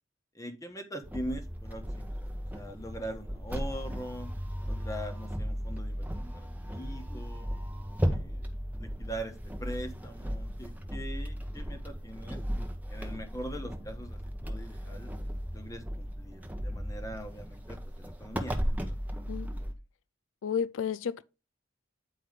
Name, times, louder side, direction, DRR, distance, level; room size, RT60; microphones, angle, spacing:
voice 1, 0.3-2.2 2.5-4.3 4.7-6.1 6.3-7.5 8.0-12.4 12.9-15.1 15.5-19.7, equal, 15° left, 1.2 m, -42 dB
sound 1, 1.0-19.7, equal, 10° right, 0.9 m, -36 dB
voice 2, 20.4-21.2, left 7 dB, 80° left, 0.4 m, -31 dB
9.1 x 4.6 x 3.6 m
head